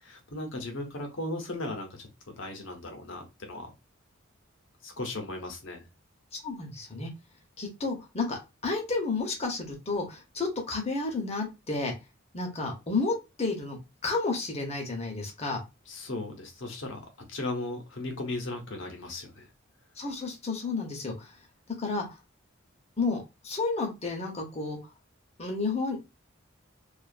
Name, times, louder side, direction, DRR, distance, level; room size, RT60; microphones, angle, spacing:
voice 1, 0.3-3.7 4.8-5.9 15.9-19.5, left 2 dB, 65° left, 4 dB, 0.8 m, -37 dB
voice 2, 6.4-7.1 7.6-11.9 12.3-15.6 20.0-21.3 21.8-22.1 23.0-24.8 25.4-26.0, left 3 dB, 30° left, 2 dB, 0.8 m, -31 dB
2.4 x 2.3 x 2.4 m, 0.25 s
head